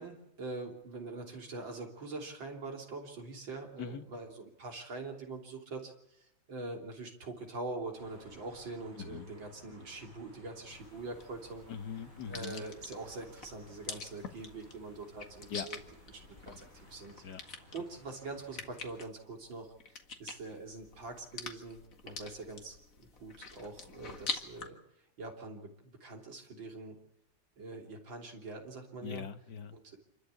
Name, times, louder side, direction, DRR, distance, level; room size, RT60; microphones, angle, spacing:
voice 1, 0.0-11.7 12.3-15.8 16.4-17.2 17.7-24.8 25.2-27.0 27.6-29.3 29.7-30.0, right 3 dB, 75° right, 2 dB, 3.9 m, -44 dB
sound 1, 8.0-19.0, left 1 dB, 25° right, 7.7 m, -59 dB
voice 2, 9.0-9.3 11.7-12.6 15.5-15.7 17.2-17.4 29.0-29.8, left 7 dB, 60° left, 9 dB, 1.7 m, -41 dB
sound 2, 10.7-24.7, left 4 dB, 45° left, 2.2 m, -46 dB
27.0 x 13.0 x 8.4 m, 0.86 s
omnidirectional pair, 2.1 m